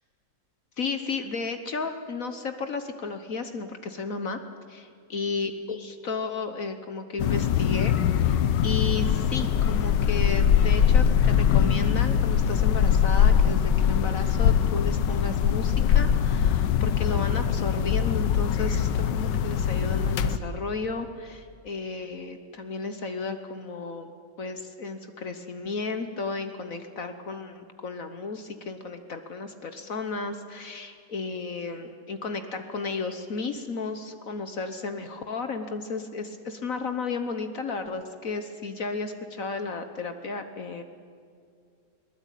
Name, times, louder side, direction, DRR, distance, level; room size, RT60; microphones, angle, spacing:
voice 1, 0.8-4.4 4.7-8.4 8.6-24.1 24.4-40.8, left 4 dB, 55° left, 8 dB, 1.4 m, -33 dB
sound 1, 7.2-20.4, left 8 dB, 85° left, 1.5 m, -22 dB
22.0 x 19.5 x 9.1 m, 2.3 s
omnidirectional pair, 1.9 m